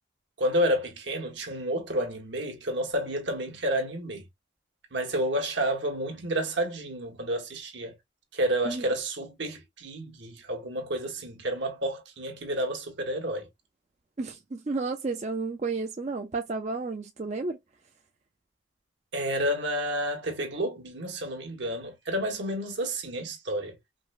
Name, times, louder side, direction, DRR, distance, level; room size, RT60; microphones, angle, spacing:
voice 1, 0.4-4.2 4.9-8.0 8.3-13.5 19.1-23.8, right 1 dB, 75° right, 1.4 m, -30 dB
voice 2, 14.2-17.6, right 3 dB, 35° right, 0.4 m, -32 dB
5.1 x 2.1 x 2.3 m
head